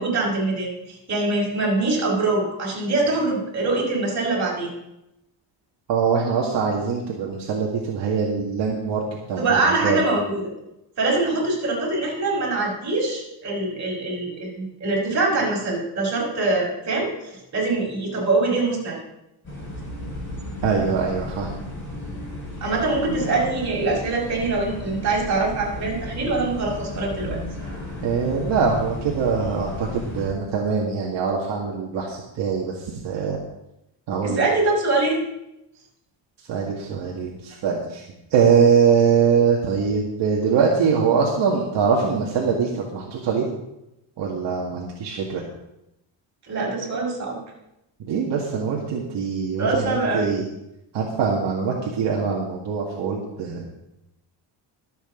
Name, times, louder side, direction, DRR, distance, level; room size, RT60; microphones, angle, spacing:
voice 1, 0.0-4.7 9.4-10.5 11.0-19.0 22.6-27.4 34.2-35.2 46.5-47.4 49.6-50.4, right 3 dB, 35° right, -3 dB, 5.5 m, -23 dB
voice 2, 5.9-9.0 9.3-10.0 20.6-21.5 28.0-33.4 34.1-34.5 36.5-38.0 38.3-43.5 44.2-45.4 48.0-50.5 50.9-53.6, right 6 dB, 65° right, -3 dB, 2.1 m, -23 dB
sound 1, 19.4-30.3, left 1 dB, 25° left, 6.0 m, -34 dB
23.5 x 8.2 x 3.9 m, 0.88 s
cardioid pair, 160°, 46 cm